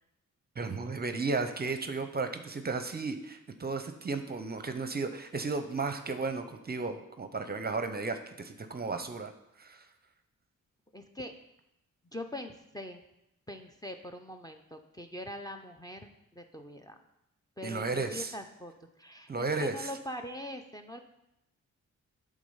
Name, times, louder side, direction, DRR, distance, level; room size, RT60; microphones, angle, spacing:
voice 1, 0.6-9.3 9.6-9.9 17.6-18.3 19.3-19.9, right 3 dB, 30° right, 8 dB, 0.6 m, -34 dB
voice 2, 10.9-11.3 12.1-13.0 13.5-16.9 17.6-18.7 19.0-21.0, left 1 dB, 10° left, 6 dB, 0.6 m, -42 dB
8.4 x 3.7 x 5.5 m, 0.85 s
cardioid pair, 85°, 31 cm